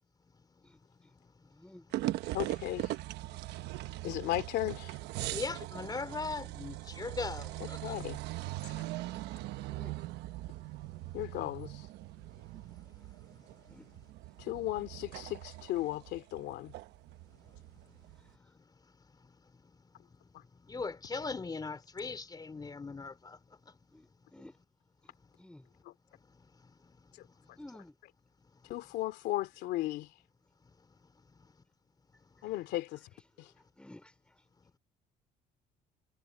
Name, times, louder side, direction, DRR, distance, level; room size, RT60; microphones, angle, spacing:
voice 1, 0.6-2.0 3.5-3.7 5.2-8.0 8.9-9.0 9.4-9.9 10.6-11.2 12.4-14.0 14.5-14.7 17.3-23.8 25.7-25.8 26.1-27.7 28.5-28.6 31.3-31.5 32.2-32.4, left 4 dB, 25° left, 3.7 m, -43 dB
voice 2, 1.5-1.9 3.3-3.4 9.7-9.9 11.0-11.1 13.7-13.9 23.9-24.5 25.4-25.7 27.6-27.9 33.8-34.1, left 1 dB, 5° left, 3.1 m, -52 dB
sound 1, 1.9-18.3, right 16 dB, 85° right, 1.0 m, -41 dB
voice 3, 2.3-2.9 4.0-4.9 7.8-8.2 8.7-8.8 11.1-11.8 14.4-16.7 28.7-30.1 32.4-33.0, left 16 dB, 85° left, 2.7 m, -35 dB
cardioid pair, 110°, 17 cm